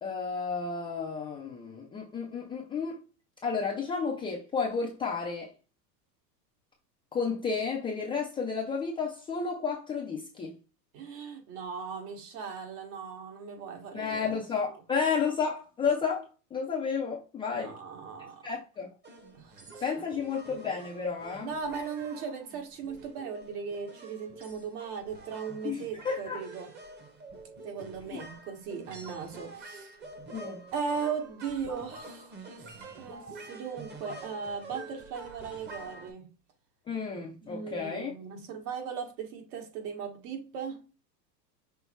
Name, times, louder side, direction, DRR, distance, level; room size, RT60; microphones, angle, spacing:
voice 1, 0.0-3.0 3.4-5.5 7.1-10.5 13.9-17.7 18.4-18.9 19.8-21.5 25.6-26.4 28.1-28.2 30.3-30.6 36.9-38.1, left 5 dB, 10° left, 0.3 m, -32 dB
voice 2, 10.9-14.3 14.7-14.8 17.5-18.5 19.4-19.8 20.1-20.2 21.4-26.7 27.6-30.0 30.7-36.3 37.4-40.9, right 6 dB, 70° right, 1.8 m, -38 dB
sound 1, 19.0-36.1, right 2 dB, 20° right, 0.8 m, -47 dB
5.6 x 2.0 x 4.4 m
supercardioid pair, 130°, 50 cm